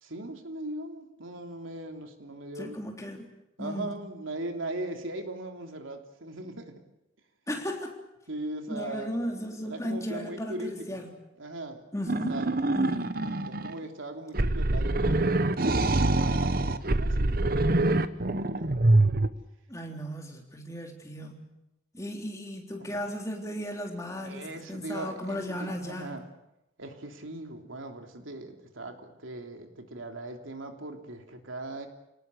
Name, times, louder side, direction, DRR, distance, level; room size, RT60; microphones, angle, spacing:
voice 1, 0.0-2.8 3.6-6.8 8.3-9.2 9.6-11.0 11.4-11.8 12.3-12.5 13.5-18.2 18.5-18.8 22.8-23.0 24.2-26.2 26.8-31.9, right 2 dB, 85° right, 4 dB, 3.3 m, -39 dB
voice 2, 2.6-3.9 7.5-8.0 8.7-11.1 11.9-12.5 12.7-13.1 19.7-21.5 21.9-26.2, equal, 15° left, 1 dB, 3.6 m, -36 dB
sound 1, 12.1-13.7 14.3-19.3, right 2 dB, 50° right, 1.0 m, -25 dB
29.0 x 19.0 x 8.4 m, 0.88 s
head